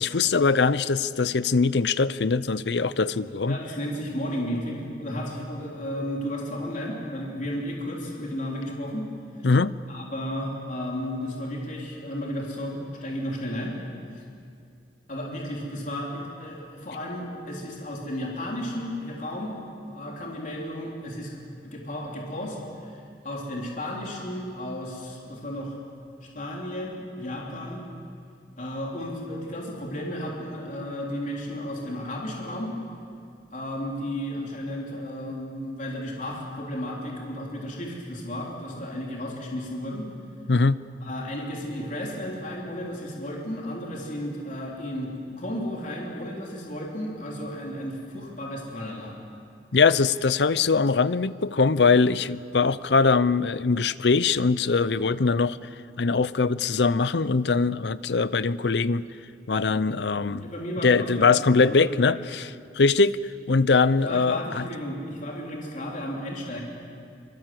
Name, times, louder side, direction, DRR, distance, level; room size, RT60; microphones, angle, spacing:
voice 1, 0.0-3.6 9.4-9.7 40.5-40.8 49.7-55.6 56.0-59.1 59.5-60.4 60.8-63.2 63.5-64.6, left 4 dB, 75° left, 17 dB, 0.6 m, -22 dB
voice 2, 3.5-9.0 9.4-9.5 9.9-13.8 14.1-14.2 15.1-19.6 19.9-25.8 26.2-27.8 28.6-32.7 33.5-40.1 41.0-49.1 60.4-62.2 63.9-66.6, equal, 45° left, -2 dB, 3.6 m, -33 dB
24.5 x 24.5 x 7.8 m, 2.4 s
head